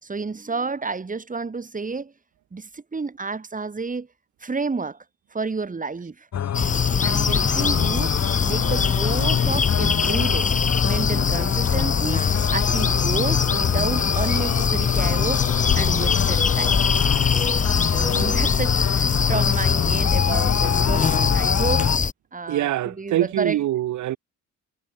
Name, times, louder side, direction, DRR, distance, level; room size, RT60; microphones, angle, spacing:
voice 1, 0.0-2.1 2.5-4.1 4.4-5.0 5.3-6.3 7.0-10.5 10.8-15.5 15.8-16.8 17.9-21.9 22.3-23.6, right 4 dB, 25° right, 4.4 m, -30 dB
sound 1, 6.3-22.0, left 9 dB, 60° left, 2.9 m, -25 dB
sound 2, 6.5-22.1, left 5 dB, 25° left, 0.9 m, -23 dB
sound 3, 14.9-21.5, left 14 dB, 80° left, 2.7 m, -33 dB
voice 2, 22.5-24.2, right 13 dB, 75° right, 1.4 m, -24 dB
cardioid pair, 90°, 30 cm